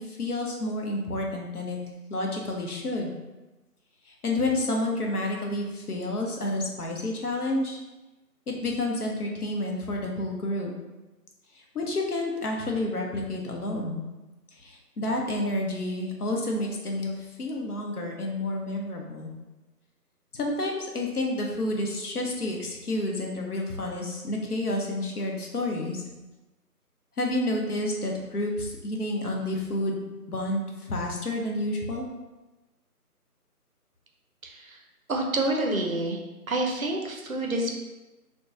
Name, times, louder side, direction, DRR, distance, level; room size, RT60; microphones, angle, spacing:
voice 1, 0.0-1.8 2.1-3.1 4.1-7.8 8.5-10.7 11.5-14.0 14.5-19.3 20.3-26.0 27.2-32.1, left 1 dB, 70° left, 0 dB, 0.7 m, -30 dB
voice 2, 34.4-34.8 35.1-36.2 36.5-37.8, right 2 dB, 60° right, 2 dB, 0.5 m, -28 dB
2.9 x 2.1 x 2.4 m, 1.1 s
figure-of-eight pair, 160°, 48 cm